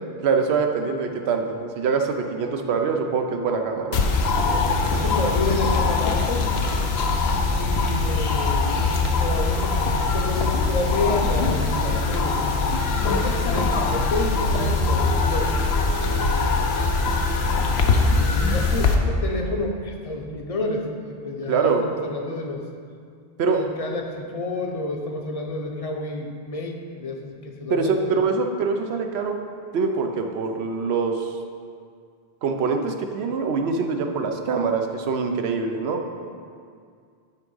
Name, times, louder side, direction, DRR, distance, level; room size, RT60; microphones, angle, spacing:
voice 1, 0.2-4.0 21.5-21.8 23.4-23.6 27.7-29.4 29.7-31.3 32.4-36.1, right 5 dB, 85° right, 4 dB, 0.9 m, -24 dB
sound 1, 3.9-19.0, left 3 dB, 85° left, 0.9 m, -22 dB
voice 2, 4.4-6.5 7.5-8.7 9.0-12.4 13.0-15.6 18.1-22.6 23.4-28.2, left 2 dB, 40° left, 2 dB, 0.7 m, -30 dB
9.5 x 3.6 x 5.4 m, 2.2 s
omnidirectional pair, 1.1 m